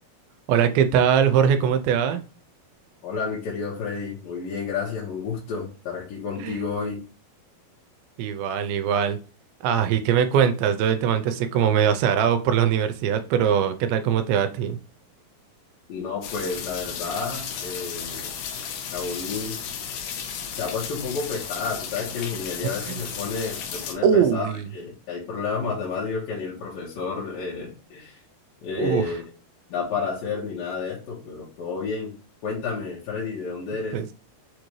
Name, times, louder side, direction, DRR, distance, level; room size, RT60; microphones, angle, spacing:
voice 1, 0.5-2.2 6.4-6.6 8.2-9.2 9.6-14.8 22.9-23.0 24.0-24.7 28.8-29.0 33.9-34.1, right 8 dB, 80° right, 2.3 m, -21 dB
voice 2, 3.0-7.0 15.9-18.3 18.9-19.6 20.5-28.2 28.6-29.2 29.7-32.1 32.4-34.0, left 5 dB, 70° left, 2.7 m, -31 dB
sound 1, 16.2-23.9, left 7 dB, 85° left, 2.6 m, -34 dB
6.5 x 2.6 x 3.0 m
omnidirectional pair, 4.5 m